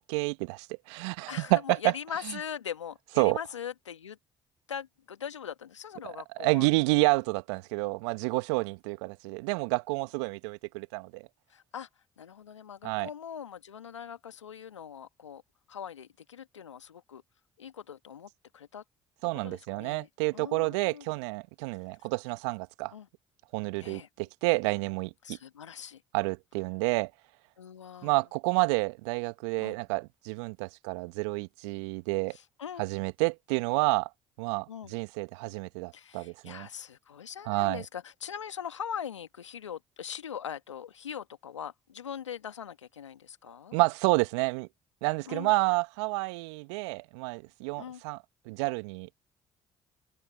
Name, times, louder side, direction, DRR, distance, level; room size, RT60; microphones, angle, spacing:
voice 1, 0.1-1.9 2.3-2.4 3.2-3.4 6.0-6.1 6.4-11.3 12.8-13.1 19.2-22.9 23.5-25.4 26.1-27.1 28.0-32.4 32.8-34.1 34.4-36.7 37.4-37.8 43.7-44.7 45.0-48.2 48.5-49.1, right 27 dB, 75° right, 1.2 m, -29 dB
voice 2, 1.3-4.2 4.7-6.7 11.5-11.9 12.2-15.4 15.7-17.2 17.6-18.8 19.4-21.1 22.9-23.1 23.8-24.1 25.2-26.0 27.6-28.1 29.6-29.8 32.3-32.9 34.7-34.9 35.9-43.8 45.3-45.5 47.8-48.0, left 8 dB, 90° left, 1.7 m, -41 dB
hypercardioid pair, 50°, 15 cm